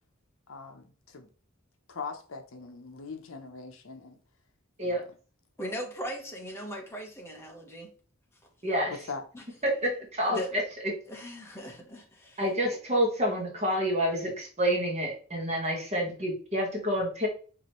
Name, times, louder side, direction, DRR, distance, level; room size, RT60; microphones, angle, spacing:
voice 1, 0.5-1.3 1.9-4.2 4.8-5.0 8.9-9.3, left 4 dB, 70° left, 0.7 m, -41 dB
voice 2, 5.6-7.9 9.3-9.4 10.2-10.5 11.1-12.4, equal, 10° left, 1.1 m, -38 dB
voice 3, 8.6-8.9 9.6-10.4 10.8-10.9 12.4-17.3, equal, 30° right, 1.3 m, -28 dB
4.7 x 3.0 x 3.0 m
head